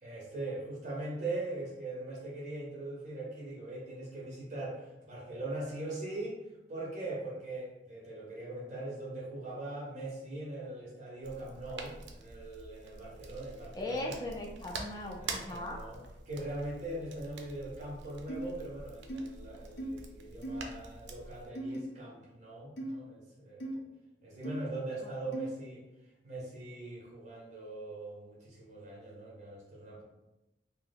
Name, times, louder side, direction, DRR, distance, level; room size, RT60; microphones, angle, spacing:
voice 1, 0.0-6.4 6.7-14.1 15.1-23.8 24.2-25.8 26.2-30.0, right 2 dB, 40° right, -4 dB, 0.6 m, -41 dB
sound 1, 11.2-21.5, right 3 dB, 80° right, 0.5 m, -46 dB
voice 2, 13.7-15.8 25.0-25.1, left 1 dB, 20° left, -1 dB, 0.5 m, -38 dB
sound 2, 18.3-18.5 19.1-19.2 19.8-19.9 20.4-20.6 21.6-21.8 22.8-22.9 23.6-23.8 24.4-24.6 25.3-25.5, right 2 dB, 80° left, 0.6 m, -38 dB
2.8 x 2.0 x 3.9 m, 0.98 s
head